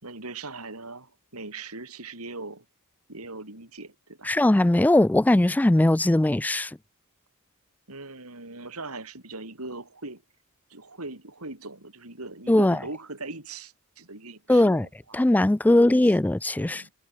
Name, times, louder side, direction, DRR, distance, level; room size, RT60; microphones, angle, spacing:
voice 1, 0.0-2.7 3.1-4.3 7.9-10.2 10.7-15.2 15.7-15.9 16.6-16.9, right 3 dB, 80° right, 5.7 m, -40 dB
voice 2, 4.2-6.8 12.5-12.8 14.5-14.9 15.1-16.8, left 1 dB, 5° left, 0.3 m, -20 dB
head